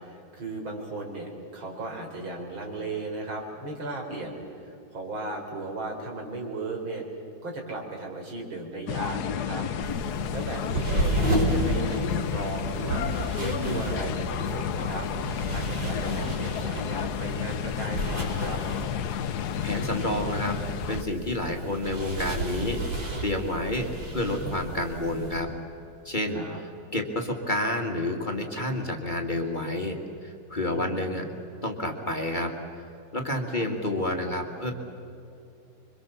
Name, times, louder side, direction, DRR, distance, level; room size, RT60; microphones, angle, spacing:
voice 1, 0.0-7.0 7.4-9.7 10.3-13.0 13.4-15.1 15.5-18.6 26.3-26.6 30.7-31.0 33.5-33.6, right 2 dB, 90° right, 0 dB, 4.8 m, -36 dB
sound 1, 8.9-21.0, left 8 dB, 60° left, 1.2 m, -31 dB
sound 2, 9.8-25.4, right 1 dB, 75° right, 5.3 m, -32 dB
voice 2, 19.6-22.8 23.2-25.5 26.1-26.4 26.9-30.0 30.2-31.3 31.6-32.5 33.1-34.7, left 1 dB, 25° left, 2 dB, 1.8 m, -29 dB
26.5 x 24.0 x 7.0 m, 2.7 s
omnidirectional pair, 2.1 m